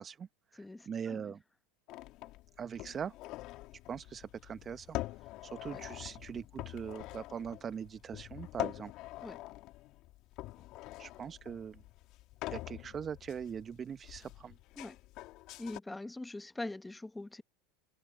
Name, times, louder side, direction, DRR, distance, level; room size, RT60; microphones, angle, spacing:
voice 1, 0.0-1.4 2.6-3.1 3.9-5.0 5.4-8.9 11.0-11.8 12.5-14.6, right 7 dB, 30° right, 0.9 m, -41 dB
voice 2, 0.6-1.4 5.7-5.8 9.2-9.4 14.8-14.9 15.6-17.4, left 2 dB, 10° left, 1.2 m, -43 dB
sound 1, 1.9-15.8, left 18 dB, 55° left, 3.0 m, -45 dB
hypercardioid pair, 95°, 0 cm